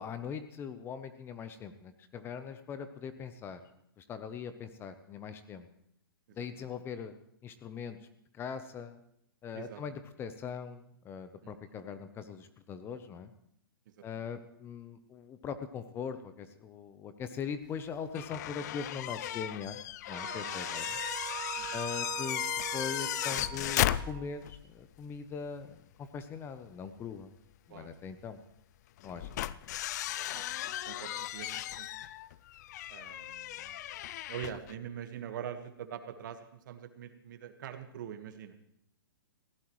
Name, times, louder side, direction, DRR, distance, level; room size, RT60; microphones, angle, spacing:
voice 1, 0.0-3.6 4.0-5.7 6.3-7.1 7.4-8.0 8.3-9.0 9.4-13.3 14.0-19.8 20.1-21.0 21.7-22.4 22.7-27.3 27.7-28.4 29.0-29.3, left 6 dB, 20° left, 10 dB, 0.7 m, -41 dB
voice 2, 6.3-6.7 9.5-9.8 11.4-11.6 14.1-14.2 20.4-20.5 21.6-21.8 27.7-27.9 29.3-29.4 30.3-31.9 32.9-33.8 34.3-38.5, right 9 dB, 55° right, 8 dB, 1.5 m, -44 dB
sound 1, 18.1-24.6 25.0-25.1 27.1-27.2 29.0-34.7, left 13 dB, 45° left, 0.4 m, -36 dB
sound 2, 20.1-24.5, right 16 dB, 30° right, 0.6 m, -42 dB
19.0 x 16.0 x 3.2 m, 0.71 s
hypercardioid pair, 140°, 12 cm